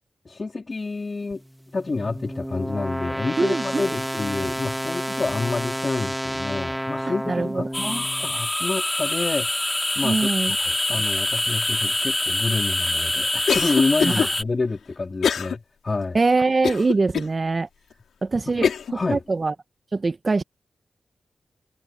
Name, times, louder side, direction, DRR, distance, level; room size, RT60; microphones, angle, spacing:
voice 1, 0.2-1.4 1.7-16.2 18.5-19.2, left 3 dB, 50° left, 3.2 m, -28 dB
sound 1, 1.3-8.4, equal, 5° right, 2.6 m, -30 dB
voice 2, 3.4-3.8 7.0-8.0 10.0-10.5 14.0-14.3 16.1-17.7 18.2-18.7 19.1-19.5 19.9-20.4, right 3 dB, 50° right, 1.5 m, -23 dB
sound 2, 7.7-14.4, left 1 dB, 15° left, 6.1 m, -25 dB
Cough, 13.5-14.3 15.2-15.6 16.0-16.1 16.6-17.3 17.9-18.0 18.6-18.9, left 7 dB, 85° left, 3.5 m, -23 dB
cardioid pair, 45°, 0 cm